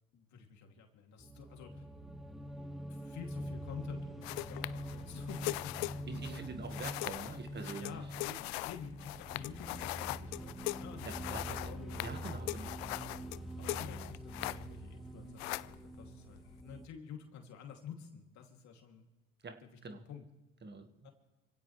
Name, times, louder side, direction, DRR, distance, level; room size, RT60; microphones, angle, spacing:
voice 1, 0.1-1.8 2.9-6.4 7.7-11.3 11.6-12.2 13.6-19.0 19.6-19.7 20.1-20.2 21.0-21.1, left 7 dB, 65° left, 3 dB, 2.8 m, -50 dB
sound 1, 1.2-16.9, right 1 dB, ahead, 1.6 m, -45 dB
sound 2, 4.2-14.9 15.2-16.6, left 21 dB, 85° left, 0.5 m, -41 dB
voice 2, 6.1-8.0 11.0-11.7 12.0-13.0 19.4-20.1 20.6-21.1, right 4 dB, 35° right, 8 dB, 1.7 m, -45 dB
25.5 x 16.5 x 3.3 m, 1.1 s
supercardioid pair, 65°, 30 cm